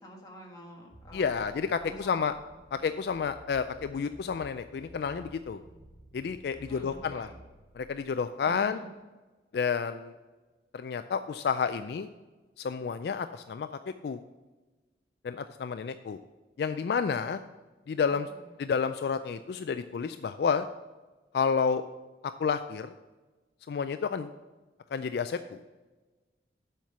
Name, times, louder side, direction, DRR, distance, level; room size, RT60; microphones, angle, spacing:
voice 1, 0.0-1.5 1.8-2.2 6.7-7.3 8.5-8.9 18.1-18.4, equal, 20° left, -1 dB, 1.5 m, -48 dB
sound 1, 0.9-8.4, right 1 dB, 20° right, 3.2 m, -54 dB
voice 2, 1.1-2.3 2.7-5.6 6.1-7.3 7.7-8.8 9.5-10.1 10.7-12.1 12.6-13.7 14.0-14.2 15.2-16.2 16.6-17.4 17.9-18.3 18.6-20.7 21.3-21.8 22.2-22.9 23.7-24.3 24.9-25.6, left 6 dB, 60° left, 10 dB, 0.3 m, -30 dB
7.5 x 5.8 x 6.7 m, 1.2 s
head